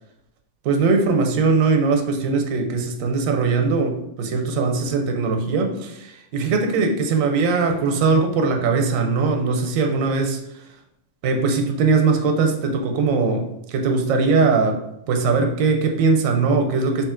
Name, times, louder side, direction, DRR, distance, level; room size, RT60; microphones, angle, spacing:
voice 1, 0.6-10.4 11.2-14.8 15.1-17.0, right 4 dB, 85° right, 4 dB, 1.0 m, -20 dB
3.3 x 2.7 x 3.6 m, 0.83 s
omnidirectional pair, 1.4 m